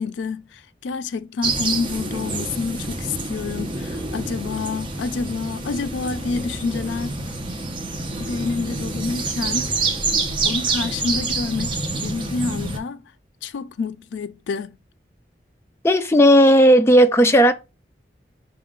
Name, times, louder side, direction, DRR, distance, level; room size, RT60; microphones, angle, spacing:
voice 1, 0.0-7.2 8.2-10.0 10.4-13.0 13.4-14.8, left 4 dB, 85° left, 0.4 m, -28 dB
sound 1, 1.4-12.8, right 3 dB, 30° right, 0.7 m, -27 dB
voice 2, 15.8-17.5, equal, 15° left, 0.3 m, -13 dB
4.8 x 3.0 x 3.6 m
head